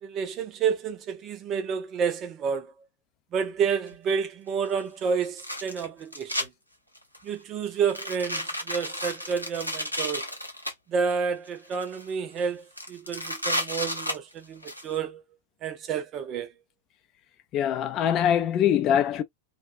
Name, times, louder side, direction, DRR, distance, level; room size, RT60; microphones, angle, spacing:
voice 1, 0.0-2.7 3.3-6.5 7.2-10.3 10.9-15.2 15.6-16.5, right 6 dB, 30° right, 0.5 m, -30 dB
sound 1, 3.9-4.0 5.2-6.5 7.0-7.3 7.8-10.7 11.5-12.1 12.4-12.5 12.8-14.8, equal, 90° left, 0.6 m, -32 dB
voice 2, 17.5-19.2, left 9 dB, 35° left, 0.4 m, -23 dB
2.3 x 2.2 x 2.4 m
figure-of-eight pair, 90°, 0 cm